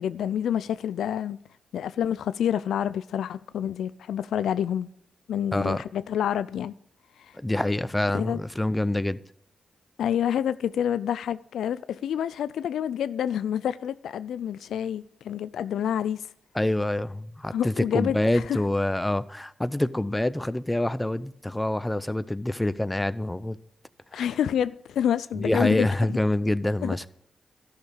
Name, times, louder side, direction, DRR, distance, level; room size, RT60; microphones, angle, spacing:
voice 1, 0.0-1.4 1.7-4.9 5.3-6.7 7.2-7.4 8.1-8.4 10.0-16.3 17.5-18.6 24.1-26.2 26.8-27.0, left 9 dB, 85° left, 0.3 m, -28 dB
voice 2, 5.5-5.8 7.3-9.2 16.5-23.6 24.1-24.2 25.4-27.1, left 1 dB, 15° left, 0.6 m, -26 dB
12.0 x 6.5 x 5.3 m
cardioid pair, 55°, 0 cm